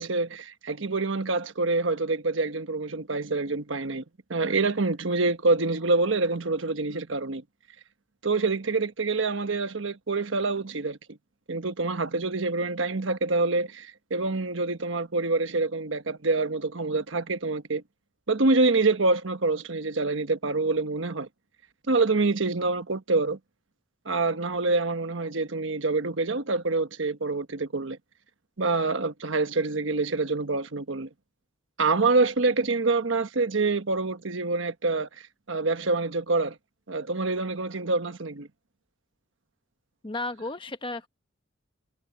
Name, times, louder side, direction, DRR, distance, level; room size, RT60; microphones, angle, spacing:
voice 1, 0.0-4.0 4.3-7.4 8.2-11.0 11.5-17.8 18.3-21.3 21.9-23.4 24.0-28.0 28.6-31.1 31.8-36.6 36.9-38.5, right 3 dB, 70° right, 1.2 m, -26 dB
voice 2, 40.0-41.1, left 2 dB, 25° left, 1.0 m, -33 dB
head